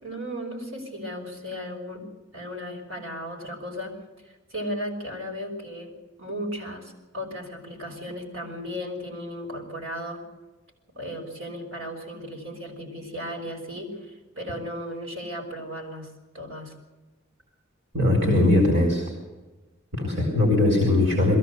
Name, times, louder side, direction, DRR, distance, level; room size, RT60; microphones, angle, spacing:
voice 1, 0.0-2.0 2.3-3.9 4.5-5.9 6.2-10.2 10.9-16.1 16.3-16.7, equal, 75° right, 1 dB, 5.9 m, -35 dB
voice 2, 17.9-19.0 19.9-21.4, left 2 dB, 60° right, 1 dB, 4.2 m, -20 dB
22.0 x 15.0 x 8.1 m, 1.2 s
head